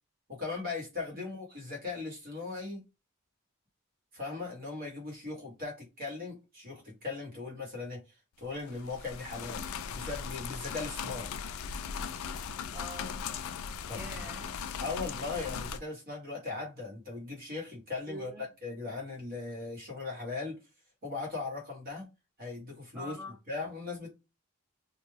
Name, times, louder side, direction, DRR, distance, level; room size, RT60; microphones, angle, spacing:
voice 1, 0.3-2.8 4.1-8.0 8.4-11.3 13.9-14.3 14.8-20.6 21.0-22.1 22.4-23.2 23.5-24.1, left 3 dB, 45° right, 1.3 m, -38 dB
sound 1, 8.5-15.8, left 6 dB, 70° left, 0.3 m, -38 dB
voice 2, 12.7-13.2 13.9-14.5 18.1-18.4 22.9-23.4, equal, 10° right, 0.5 m, -44 dB
2.4 x 2.2 x 3.2 m
head